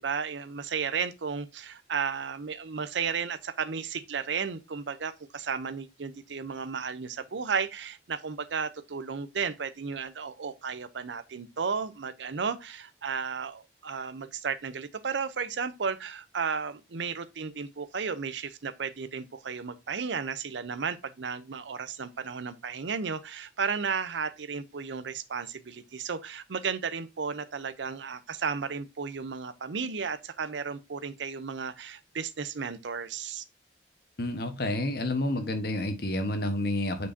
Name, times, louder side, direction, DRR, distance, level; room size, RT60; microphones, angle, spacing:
voice 1, 0.0-33.4, right 6 dB, 85° right, 0.6 m, -34 dB
voice 2, 34.2-37.1, left 1 dB, 60° left, 1.2 m, -29 dB
8.3 x 4.6 x 2.7 m
head